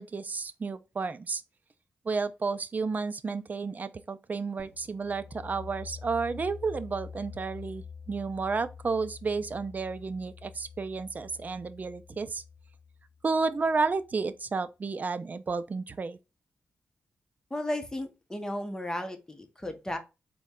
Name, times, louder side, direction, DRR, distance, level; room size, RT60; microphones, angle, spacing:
voice 1, 0.0-1.4 2.1-12.4 13.2-16.2, right 4 dB, 40° right, 0.4 m, -32 dB
sound 1, 4.6-14.2, left 6 dB, 50° left, 0.5 m, -47 dB
voice 2, 17.5-20.0, left 1 dB, 15° left, 0.8 m, -34 dB
3.9 x 2.2 x 3.6 m
cardioid pair, 80°, 4 cm